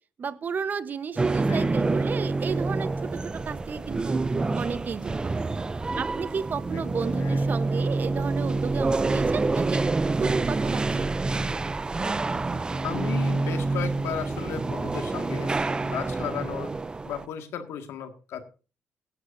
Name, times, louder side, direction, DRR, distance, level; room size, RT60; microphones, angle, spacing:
voice 1, 0.2-4.2 4.6-5.5 6.0-9.8 10.2-11.2, right 6 dB, 40° right, 13 dB, 1.0 m, -33 dB
sound 1, 1.2-17.2, right 3 dB, 20° right, 0.5 m, -27 dB
voice 2, 6.7-7.4 12.8-15.5 15.8-16.7 17.0-18.4, left 8 dB, 85° left, 6 dB, 2.0 m, -35 dB
17.5 x 12.5 x 2.7 m, 0.35 s
cardioid pair, 115°, 4 cm